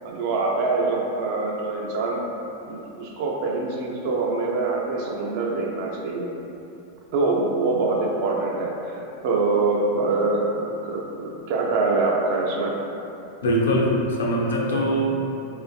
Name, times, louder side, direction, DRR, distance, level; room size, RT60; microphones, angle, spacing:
voice 1, 0.0-2.2 2.7-6.3 7.1-12.8, right 3 dB, 50° right, -1 dB, 0.3 m, -24 dB
voice 2, 13.4-15.2, equal, 65° left, -2 dB, 0.3 m, -22 dB
2.5 x 2.4 x 2.4 m, 2.9 s
figure-of-eight pair, 90°, 0 cm